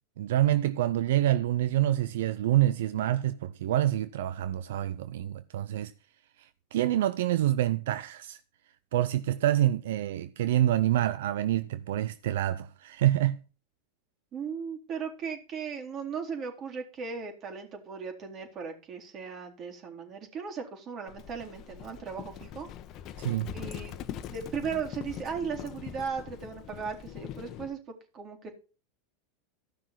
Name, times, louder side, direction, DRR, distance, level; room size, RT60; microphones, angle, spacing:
voice 1, 0.2-5.9 6.4-8.4 8.9-13.4 23.2-23.5, right 13 dB, 75° right, 0.5 m, -27 dB
voice 2, 14.3-22.7 23.5-27.8 28.1-28.6, right 6 dB, 40° right, 3.9 m, -37 dB
Livestock farm animals working animals, 21.1-27.7, left 10 dB, 45° left, 1.1 m, -42 dB
14.5 x 6.2 x 5.9 m
hypercardioid pair, 105°, 0 cm